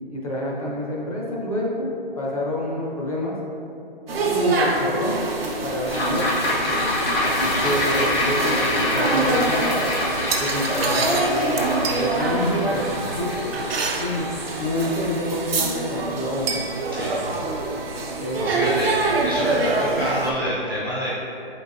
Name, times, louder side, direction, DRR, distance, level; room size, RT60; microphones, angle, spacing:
voice 1, 0.1-1.9 2.2-3.4 4.2-5.3 5.6-6.6 7.2-9.7 10.4-13.5 14.0-16.5 18.2-18.9 19.5-19.7, left 1 dB, 40° left, -3 dB, 0.6 m, -27 dB
sound 1, 4.1-20.3, right 3 dB, 80° right, 0.7 m, -25 dB
sound 2, 5.9-16.4 16.7-16.8, left 1 dB, 85° left, 1.0 m, -26 dB
voice 2, 16.9-17.2 18.4-21.1, left 1 dB, 25° right, -9 dB, 0.4 m, -28 dB
4.5 x 3.9 x 2.4 m, 2.7 s
hypercardioid pair, 175°, 29 cm